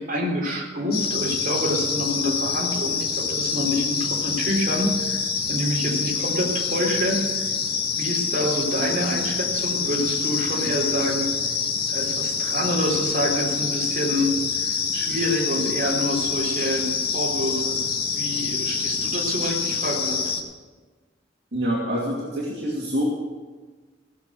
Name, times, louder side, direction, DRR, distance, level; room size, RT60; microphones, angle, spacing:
voice 1, 0.0-5.2 5.5-7.5 8.0-11.3 11.9-16.9 17.1-17.8 18.1-20.3, equal, 50° right, -3 dB, 3.9 m, -27 dB
sound 1, 0.9-20.4, left 5 dB, 60° left, 1.8 m, -26 dB
voice 2, 21.5-23.0, equal, 70° right, -5 dB, 2.6 m, -26 dB
17.5 x 6.9 x 7.8 m, 1.4 s
head